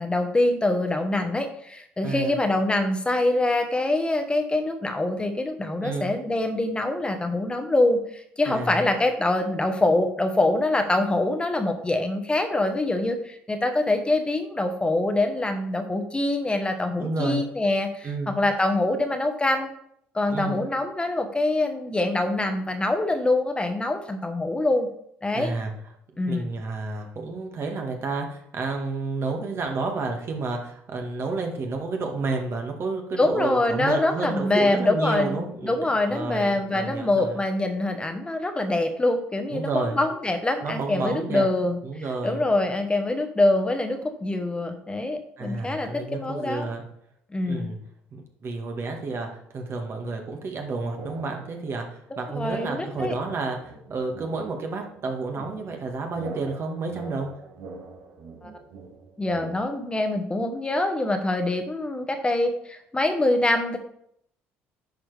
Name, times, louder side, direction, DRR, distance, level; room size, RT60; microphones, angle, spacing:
voice 1, 0.0-19.7 20.1-24.9 25.2-25.5 26.2-26.5 33.2-41.8 42.2-46.7 47.3-47.7 52.1-53.1 58.4-58.5 59.2-63.8, left 2 dB, 20° left, 6 dB, 1.1 m, -24 dB
voice 2, 2.0-2.3 5.8-6.1 8.5-8.9 17.0-17.5 18.0-18.4 20.3-20.6 25.3-25.7 26.2-37.4 39.5-40.0 40.6-41.4 41.8-42.4 45.4-46.8 47.5-47.8 48.1-57.3, right 3 dB, 50° right, 3 dB, 1.7 m, -30 dB
sound 1, 51.0-51.8 52.3-59.6, right 3 dB, 70° right, 1.6 m, -43 dB
10.0 x 4.9 x 3.4 m, 0.70 s
supercardioid pair, 70°, 6 cm